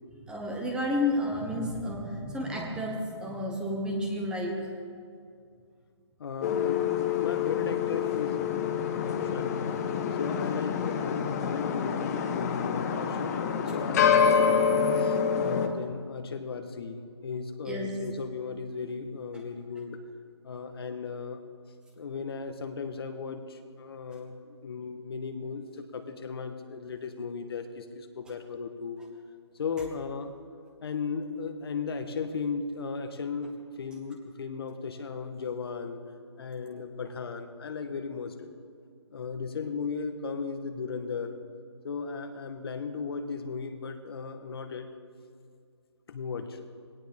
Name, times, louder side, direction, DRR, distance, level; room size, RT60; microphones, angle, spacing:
voice 1, 0.3-4.7 17.7-18.0, left 1 dB, 5° right, 0 dB, 1.4 m, -31 dB
voice 2, 6.2-8.7 9.0-20.0 20.4-21.4 21.9-29.0 29.5-30.3 30.8-36.0 36.4-38.5 39.1-41.4 41.8-44.9 46.1-46.6, left 5 dB, 55° left, 7 dB, 1.5 m, -36 dB
sound 1, 6.4-15.7, left 7 dB, 35° left, 1.3 m, -27 dB
20.5 x 17.5 x 3.6 m, 2.3 s
hypercardioid pair, 155°, 15 cm